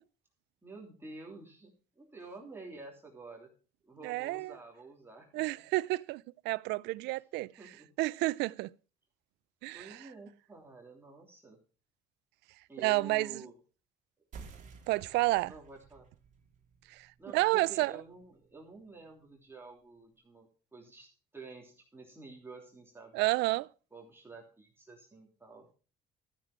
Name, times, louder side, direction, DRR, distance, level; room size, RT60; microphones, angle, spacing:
voice 1, 0.6-3.5 3.8-5.5 7.4-7.9 9.7-11.6 12.7-13.5 15.5-16.1 17.2-23.2 23.5-23.6 23.9-25.7, right 3 dB, 15° right, 3.1 m, -50 dB
voice 2, 4.0-4.5 5.3-7.5 8.0-8.7 9.6-10.0 12.8-13.4 14.9-15.5 16.9-17.9 23.1-23.7, right 20 dB, 85° right, 0.4 m, -30 dB
sound 1, 14.3-19.4, right 5 dB, 45° right, 2.9 m, -54 dB
13.0 x 7.4 x 4.8 m
cardioid pair, 110°, 17 cm